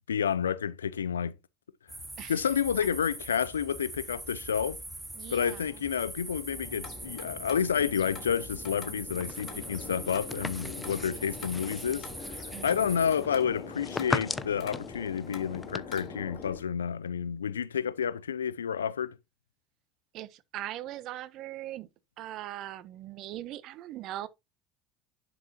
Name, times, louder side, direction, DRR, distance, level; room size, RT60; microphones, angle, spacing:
voice 1, 0.1-1.4 2.2-4.8 5.3-19.2, left 7 dB, 85° left, 0.5 m, -30 dB
sound 1, 1.9-13.2, right 1 dB, 10° right, 3.4 m, -42 dB
voice 2, 5.2-5.6 12.5-12.9 20.1-21.9 22.2-24.3, right 14 dB, 55° right, 1.0 m, -40 dB
sound 2, 6.5-16.6, left 5 dB, 45° left, 3.6 m, -44 dB
sound 3, 9.1-15.8, left 4 dB, 20° left, 0.8 m, -39 dB
10.5 x 6.3 x 2.9 m
hypercardioid pair, 70°, 0 cm